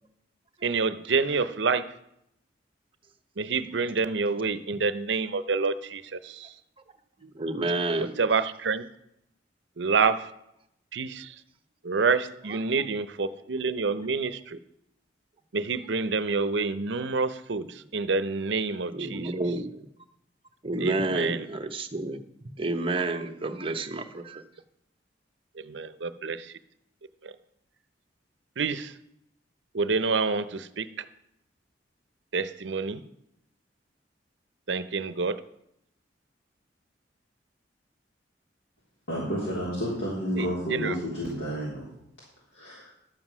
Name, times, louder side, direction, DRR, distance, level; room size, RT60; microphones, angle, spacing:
voice 1, 0.6-1.8 3.4-6.5 7.2-7.3 8.0-8.8 9.8-10.3 10.9-11.3 11.8-14.6 15.5-19.3 20.8-21.4 25.6-26.5 27.2-27.3 28.6-28.9 29.7-31.0 32.3-33.0 34.7-35.4 40.4-41.0, right 4 dB, 70° right, 13 dB, 0.7 m, -28 dB
voice 2, 7.3-8.1 18.9-19.9 20.6-24.4, right 2 dB, 30° right, 6 dB, 0.9 m, -30 dB
voice 3, 39.1-41.9 42.5-42.9, equal, 70° left, -7 dB, 3.6 m, -31 dB
12.0 x 7.6 x 6.1 m, 0.79 s
head